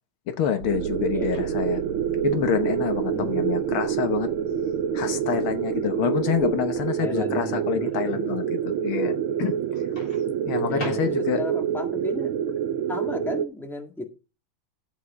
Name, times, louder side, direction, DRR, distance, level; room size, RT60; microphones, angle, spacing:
voice 1, 0.3-1.8 2.2-4.3 4.9-9.6 10.5-11.4, left 8 dB, 80° left, 1.9 m, -27 dB
sound 1, 0.6-6.8, right 7 dB, 75° right, 1.8 m, -43 dB
sound 2, 0.7-13.5, right 8 dB, 90° right, 1.7 m, -27 dB
Microwave oven, 1.2-1.9 3.9-4.1 10.0-11.6, left 1 dB, 55° left, 3.9 m, -41 dB
voice 2, 7.0-8.4 10.7-12.3 12.9-14.1, left 2 dB, ahead, 1.5 m, -34 dB
12.5 x 8.0 x 3.6 m
omnidirectional pair, 2.3 m